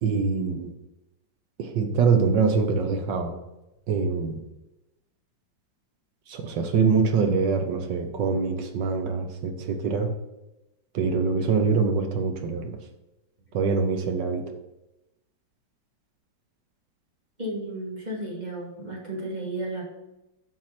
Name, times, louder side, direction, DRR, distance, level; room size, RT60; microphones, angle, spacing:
voice 1, 0.0-0.7 1.6-3.3 3.9-4.4 6.3-10.1 10.9-12.8 13.5-14.4, right 5 dB, 70° right, 5 dB, 1.5 m, -24 dB
voice 2, 17.4-19.8, right 1 dB, 20° right, -4 dB, 2.2 m, -33 dB
7.4 x 4.6 x 5.8 m, 0.94 s
omnidirectional pair, 2.1 m